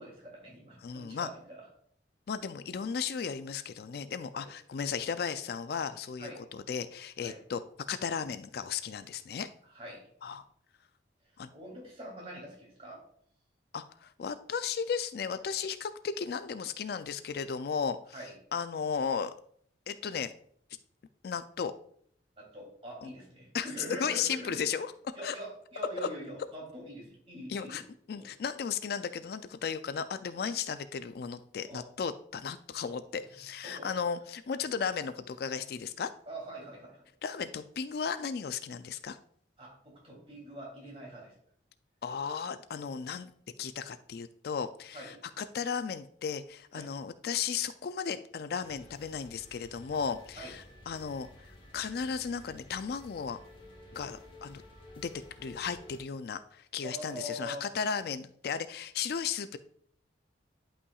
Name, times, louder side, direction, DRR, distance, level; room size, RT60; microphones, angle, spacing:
voice 1, 0.0-1.7 4.3-4.5 6.2-6.4 7.2-7.4 9.7-10.1 11.5-13.0 18.1-18.3 22.4-24.6 25.1-27.8 28.1-28.3 31.6-31.8 33.6-33.9 36.3-37.1 39.6-41.3 44.9-45.2 46.7-46.9 50.3-50.5 56.8-57.7, equal, 30° right, -3 dB, 3.0 m, -44 dB
voice 2, 0.8-1.3 2.3-7.6 7.9-9.5 10.2-10.4 11.4-11.5 13.7-18.0 18.5-19.3 19.9-20.3 21.2-21.7 23.0-23.1 23.5-24.9 25.2-25.4 27.5-27.8 28.1-36.1 37.2-39.2 42.0-43.3 43.6-51.3 51.7-53.4 53.9-54.6 55.0-55.1 55.4-59.6, left 6 dB, 55° left, 12 dB, 0.3 m, -35 dB
sound 1, 48.6-56.0, left 1 dB, 30° left, 1.1 m, -53 dB
11.0 x 5.6 x 2.4 m, 0.64 s
head